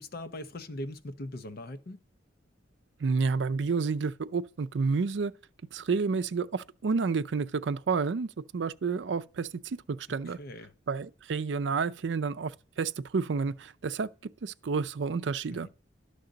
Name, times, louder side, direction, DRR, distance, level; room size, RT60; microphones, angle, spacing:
voice 1, 0.0-2.0 10.1-10.7 15.5-15.7, left 1 dB, 55° left, 0.7 m, -41 dB
voice 2, 3.0-5.3 5.7-10.4 10.9-14.1 14.4-15.7, right 5 dB, 70° right, 0.5 m, -30 dB
11.5 x 6.5 x 3.9 m
head